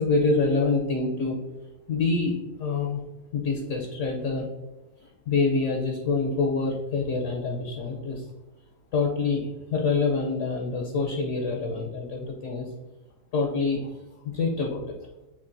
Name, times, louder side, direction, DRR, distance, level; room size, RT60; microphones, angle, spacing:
voice 1, 0.0-1.4 1.9-3.0 3.3-4.5 5.0-8.2 8.9-9.4 9.7-12.7 13.3-13.9 14.2-15.0, left 4 dB, 65° left, 0 dB, 0.8 m, -26 dB
6.9 x 2.4 x 2.6 m, 1.0 s
omnidirectional pair, 1.7 m